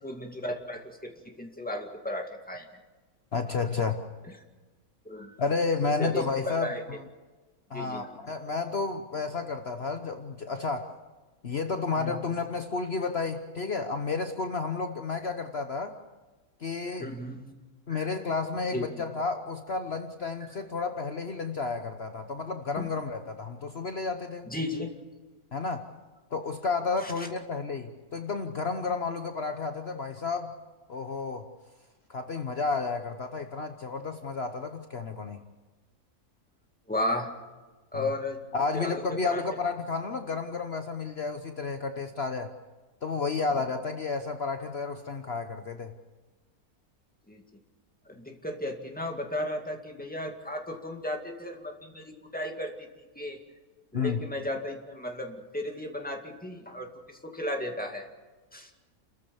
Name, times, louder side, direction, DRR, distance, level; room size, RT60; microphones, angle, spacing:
voice 1, 0.0-2.7 5.1-5.3 5.9-6.8 7.7-8.1 12.0-12.2 17.0-17.4 17.9-18.2 18.7-18.8 22.8-22.9 24.5-24.9 27.0-27.3 36.9-37.3 37.9-38.4 38.7-39.4 47.3-47.4 48.1-52.7 53.2-53.4 53.9-58.1 58.5-58.7, left 1 dB, 5° left, 2 dB, 2.1 m, -35 dB
voice 2, 3.3-4.0 5.4-6.7 7.7-10.9 11.4-15.9 16.6-17.1 17.9-24.5 25.5-25.8 26.3-30.5 30.9-31.4 32.1-35.4 37.9-38.0 38.5-42.5 43.0-45.9 53.9-54.2, left 4 dB, 50° left, 7 dB, 1.1 m, -31 dB
29.5 x 14.5 x 7.1 m, 1.3 s
omnidirectional pair, 1.6 m